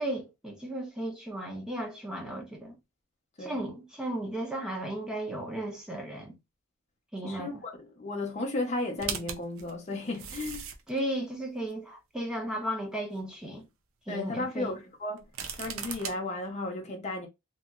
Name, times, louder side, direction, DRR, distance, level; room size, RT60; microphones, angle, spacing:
voice 1, 0.0-2.7 3.4-6.4 7.1-7.6 10.9-13.7 14.1-14.7, right 1 dB, 5° right, 0.8 m, -35 dB
voice 2, 7.2-10.7 14.1-15.2 15.6-17.3, left 2 dB, 30° left, 0.7 m, -34 dB
sound 1, 9.0-11.0 11.7-11.8 15.2-16.1, right 7 dB, 70° right, 0.5 m, -37 dB
2.9 x 2.6 x 2.3 m
head